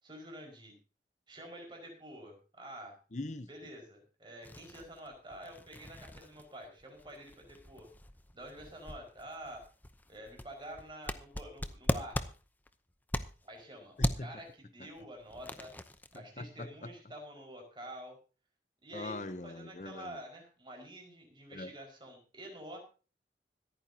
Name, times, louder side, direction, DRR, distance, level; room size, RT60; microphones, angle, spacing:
voice 1, 0.0-0.8 1.3-3.0 3.5-7.9 8.3-9.6 10.1-12.3 13.4-15.7 16.1-18.2 18.8-22.8, right 1 dB, 25° right, 1 dB, 5.2 m, -48 dB
voice 2, 3.1-3.5 14.0-14.3 16.4-16.7 18.9-20.2 21.5-21.7, left 2 dB, 40° left, 11 dB, 0.8 m, -41 dB
sound 1, 4.4-13.6 14.0-14.4 15.0-16.2, left 1 dB, 10° left, 0.7 m, -39 dB
25.5 x 9.2 x 2.8 m, 0.35 s
head